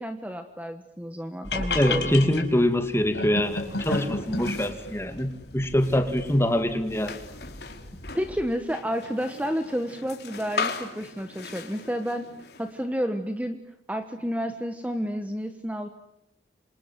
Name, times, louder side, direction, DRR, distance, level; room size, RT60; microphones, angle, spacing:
voice 1, 0.0-2.3 8.1-12.3 12.6-13.6 13.9-15.9, equal, 10° right, 7 dB, 1.3 m, -30 dB
sound 1, 1.4-8.5, left 2 dB, 85° left, 4.9 m, -34 dB
voice 2, 1.7-7.2, left 1 dB, 15° left, 7 dB, 2.4 m, -24 dB
sound 2, 3.4-12.8, left 4 dB, 65° left, 3.7 m, -39 dB
29.0 x 26.5 x 7.6 m, 0.85 s
head